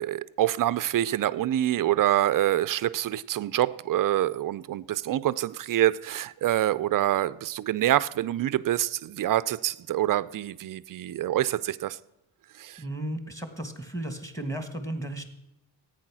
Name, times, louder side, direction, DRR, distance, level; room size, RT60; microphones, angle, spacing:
voice 1, 0.0-12.0 12.6-12.8, right 13 dB, 45° right, 0.4 m, -26 dB
voice 2, 12.8-15.3, right 1 dB, 5° left, 1.5 m, -34 dB
14.5 x 9.1 x 6.1 m
cardioid pair, 130°, 49 cm